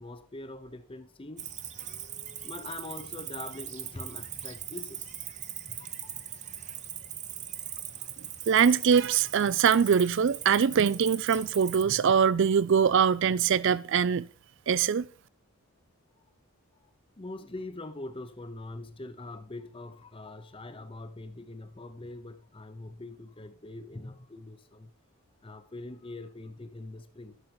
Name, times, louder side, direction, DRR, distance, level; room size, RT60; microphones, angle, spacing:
voice 1, 0.0-1.6 2.4-5.2 5.7-6.4 17.2-24.9 25.4-27.4, left 2 dB, 25° left, 0.7 m, -43 dB
Cricket, 1.4-11.8, right 10 dB, 30° right, 0.7 m, -40 dB
voice 2, 8.5-14.3 14.7-15.1, right 7 dB, 55° right, 0.4 m, -23 dB
11.5 x 6.6 x 4.4 m
head